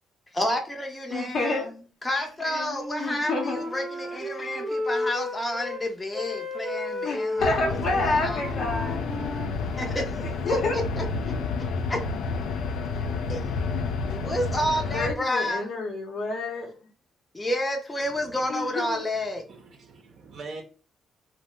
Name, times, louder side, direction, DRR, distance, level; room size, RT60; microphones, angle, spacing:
voice 1, 0.3-1.7 2.0-7.5 7.9-8.4 9.6-10.2 10.4-11.3 11.9-12.0 13.3-13.4 14.1-15.7 17.3-19.4, left 1 dB, 20° left, 0.6 m, -30 dB
voice 2, 1.1-1.7 3.0-3.6 7.0-9.1 10.2-10.8 14.8-16.7 18.5-19.0, left 2 dB, 65° left, 0.8 m, -29 dB
Wind instrument woodwind instrument, 2.4-5.8 6.1-10.0, left 1 dB, 15° right, 0.7 m, -33 dB
sound 1, 7.4-15.1, left 4 dB, 85° left, 0.3 m, -30 dB
voice 3, 18.0-18.5 19.1-20.6, right 3 dB, 60° right, 0.6 m, -44 dB
2.7 x 2.1 x 3.1 m
cardioid pair, 90°, 0 cm